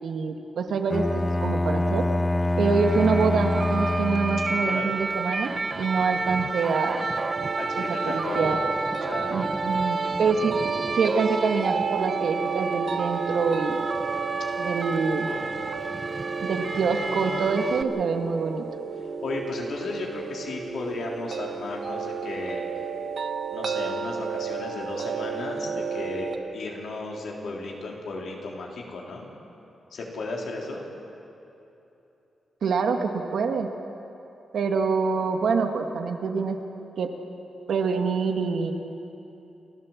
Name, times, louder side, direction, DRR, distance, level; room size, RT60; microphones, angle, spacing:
voice 1, 0.0-2.0 2.6-5.5 5.8-7.1 7.7-8.6 9.3-10.6 10.9-13.8 14.6-15.3 16.4-18.6 32.6-33.7 34.5-36.6 37.0-37.1 37.7-38.7, right 5 dB, 70° right, 4 dB, 1.7 m, -26 dB
Bowed string instrument, 0.9-4.9, left 2 dB, 15° left, 0.5 m, -25 dB
sound 1, 2.7-17.8, right 3 dB, 30° right, 0.7 m, -31 dB
sound 2, 7.2-26.4, right 5 dB, 50° right, 1.4 m, -32 dB
voice 2, 7.6-8.6 9.0-9.5 15.3-15.7 19.0-22.6 23.5-29.3 29.9-30.8, left 3 dB, 70° left, -1 dB, 3.7 m, -35 dB
29.5 x 13.0 x 7.4 m, 3.0 s
wide cardioid pair, 125°, 0 cm